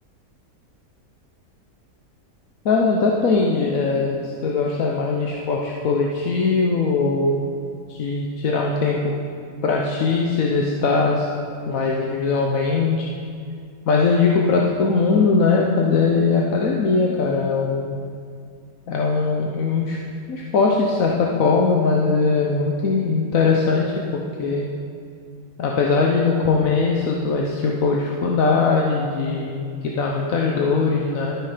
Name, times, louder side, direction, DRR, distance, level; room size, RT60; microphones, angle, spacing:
voice 1, 2.6-7.4 7.9-9.1 9.6-11.3 11.7-13.1 13.9-18.0 18.9-20.0 20.3-24.7 25.6-31.3, left 4 dB, 65° left, -1 dB, 1.2 m, -20 dB
12.5 x 9.1 x 5.0 m, 2.3 s
omnidirectional pair, 1.6 m